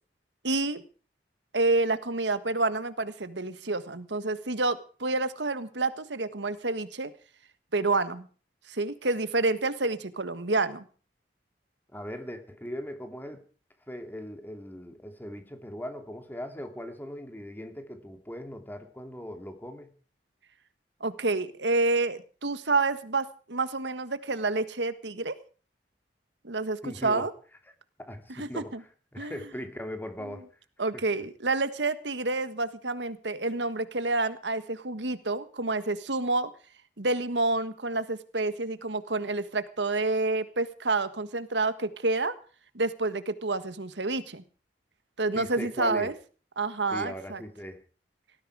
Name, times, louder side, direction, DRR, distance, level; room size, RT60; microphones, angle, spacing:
voice 1, 0.4-0.8 1.5-7.1 7.7-8.3 8.7-10.9 21.0-25.3 26.4-27.3 28.3-28.8 29.2-29.4 30.8-36.5 37.0-42.3 42.7-44.4 45.2-46.1 46.6-47.4, right 3 dB, 85° right, 12 dB, 1.6 m, -28 dB
voice 2, 11.9-13.4 13.9-19.9 26.8-27.3 28.0-28.8 29.1-30.5 30.9-31.0 45.3-46.1 46.9-47.8, equal, 10° left, 6 dB, 2.8 m, -39 dB
18.5 x 14.5 x 4.9 m, 0.39 s
head